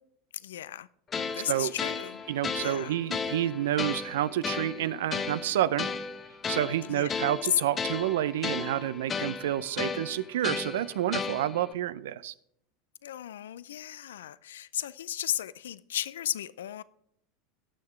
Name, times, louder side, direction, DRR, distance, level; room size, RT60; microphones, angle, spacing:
voice 1, 0.3-0.9 1.3-2.2 2.6-3.0 6.8-7.1 7.5-7.6 13.0-16.8, left 11 dB, 75° left, 19 dB, 0.4 m, -34 dB
sound 1, 1.1-11.7, left 5 dB, 30° left, 1.1 m, -35 dB
voice 2, 2.3-5.9 6.5-12.3, right 12 dB, 75° right, 17 dB, 0.5 m, -29 dB
17.5 x 6.6 x 3.2 m, 0.72 s
hypercardioid pair, 85°, 0 cm